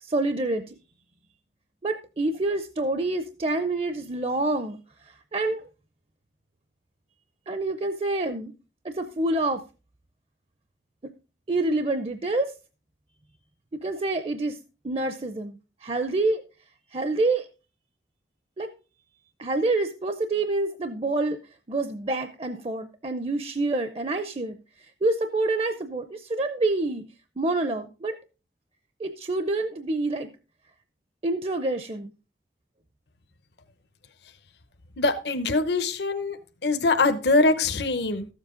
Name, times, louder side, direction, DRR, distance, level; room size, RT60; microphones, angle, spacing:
voice 1, 0.0-0.7 1.8-4.8 5.3-5.6 7.5-8.5 8.8-9.6 11.5-12.5 13.7-14.6 14.8-15.5 15.8-16.4 16.9-17.5 18.6-18.7 19.4-21.4 21.7-24.6 25.0-27.0 27.4-28.2 29.0-30.3 31.2-32.1, right 2 dB, 30° right, 9 dB, 0.5 m, -27 dB
voice 2, 35.0-36.4 36.6-38.3, left 3 dB, 70° left, 9 dB, 0.9 m, -23 dB
14.0 x 7.4 x 3.7 m, 0.33 s
head